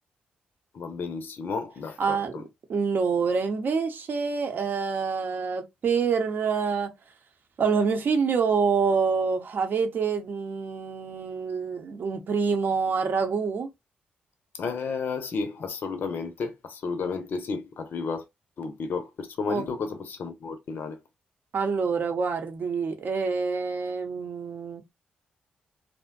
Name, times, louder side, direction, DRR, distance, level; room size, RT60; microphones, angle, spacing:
voice 1, 0.7-2.4 14.5-18.2 18.6-21.0, left 4 dB, 60° left, 0.5 m, -32 dB
voice 2, 2.0-2.3 2.7-6.9 7.6-13.7 19.5-19.6 21.5-24.8, right 5 dB, 60° right, 0.7 m, -26 dB
2.6 x 2.1 x 2.2 m
hypercardioid pair, 45°, 4 cm